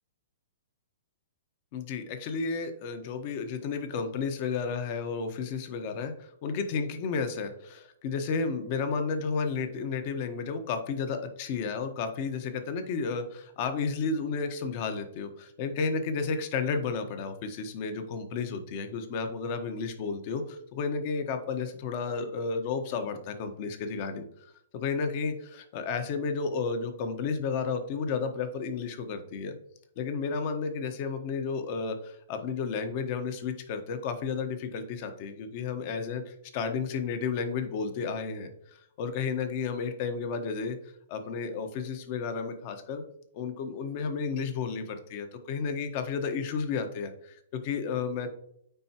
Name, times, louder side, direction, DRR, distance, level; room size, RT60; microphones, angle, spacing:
voice 1, 1.7-29.5 30.0-40.8 41.1-43.0 43.3-48.3, left 5 dB, 45° left, 7 dB, 1.1 m, -32 dB
9.1 x 4.4 x 2.9 m, 0.71 s
hypercardioid pair, 135°, 0 cm